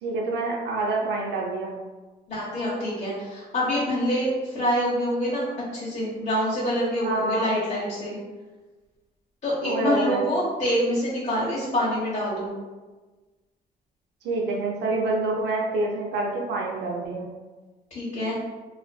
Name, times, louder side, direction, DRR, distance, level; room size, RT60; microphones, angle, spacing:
voice 1, 0.0-1.8 7.0-7.5 9.6-10.2 14.2-17.3, right 2 dB, 75° right, -1 dB, 0.5 m, -27 dB
voice 2, 2.3-5.5 5.7-8.2 9.4-12.5 17.9-18.4, equal, 45° left, -9 dB, 0.9 m, -26 dB
2.4 x 2.4 x 2.2 m, 1.3 s
cardioid pair, 70°, 18 cm